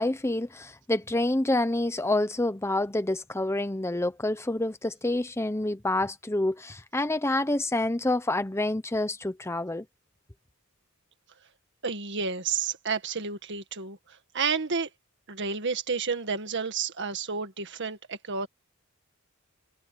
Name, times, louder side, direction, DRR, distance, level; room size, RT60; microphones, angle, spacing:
voice 1, 0.0-9.9, left 2 dB, 10° left, 0.8 m, -27 dB
voice 2, 11.8-14.9 15.3-18.5, right 5 dB, 55° right, 1.9 m, -31 dB
head